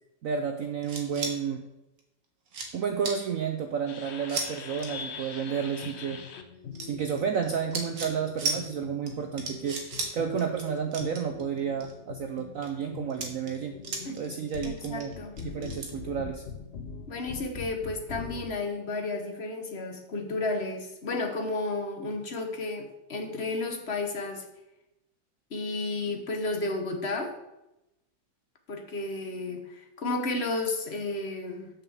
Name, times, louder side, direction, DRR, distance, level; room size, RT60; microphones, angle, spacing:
voice 1, 0.2-1.7 2.7-6.2 6.8-13.8 14.2-15.1 15.4-16.4, right 7 dB, 75° right, 5 dB, 0.7 m, -31 dB
sound 1, 0.8-1.3 2.0-2.1 2.5-2.7 3.0-3.2 4.3-4.5 4.7-4.9 6.7-7.4 7.7-8.1 8.4-8.6 9.1-9.2 9.4-10.1 10.4-10.6 10.9-11.9 12.4-12.7 13.1-14.3 14.5-15.9, right 3 dB, 50° right, 1.6 m, -34 dB
sound 2, 3.9-18.5, left 6 dB, 85° left, 0.5 m, -43 dB
voice 2, 14.6-15.3 17.1-24.4 25.5-27.3 28.7-31.7, left 2 dB, 40° left, 5 dB, 1.0 m, -32 dB
7.0 x 5.6 x 7.1 m, 0.92 s
omnidirectional pair, 2.2 m